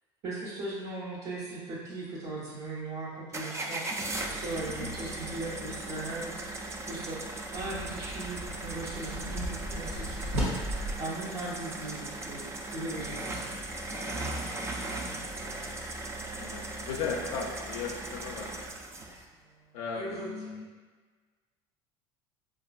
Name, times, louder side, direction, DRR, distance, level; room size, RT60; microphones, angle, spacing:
voice 1, 0.2-13.5 19.9-20.3, right 2 dB, 60° right, -10 dB, 0.9 m, -39 dB
sound 1, 3.3-19.3, right 2 dB, 20° right, 0.3 m, -38 dB
sound 2, 7.5-10.9, equal, 85° right, 0.8 m, -35 dB
voice 2, 16.4-18.5 19.7-20.7, left 5 dB, 75° left, -2 dB, 0.4 m, -36 dB
3.7 x 2.3 x 2.3 m, 1.4 s
hypercardioid pair, 80°, 14 cm